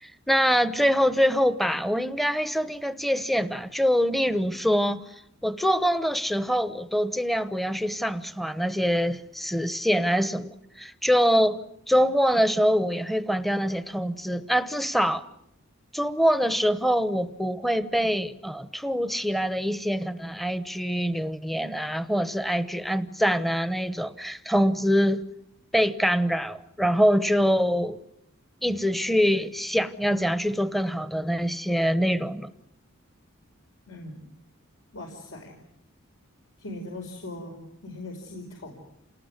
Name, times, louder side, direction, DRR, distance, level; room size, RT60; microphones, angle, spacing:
voice 1, 0.0-5.1 5.4-11.6 11.9-15.2 15.9-25.2 25.7-28.0 28.6-32.5, equal, ahead, 0.9 m, -24 dB
voice 2, 33.9-34.2 34.9-35.6 36.6-38.8, left 2 dB, 75° left, 5.0 m, -40 dB
28.5 x 19.5 x 9.8 m
head